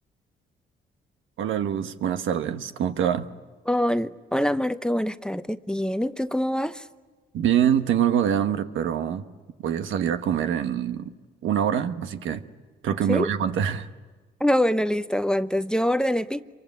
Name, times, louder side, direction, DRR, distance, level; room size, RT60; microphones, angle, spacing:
voice 1, 1.4-3.2 7.3-9.2 9.6-11.1 11.4-12.4 12.8-13.9, right 9 dB, 80° right, 1.4 m, -24 dB
voice 2, 3.7-6.8 13.1-13.3 14.4-16.4, equal, 5° left, 0.8 m, -24 dB
26.5 x 23.5 x 9.6 m
cardioid pair, 90°, 20 cm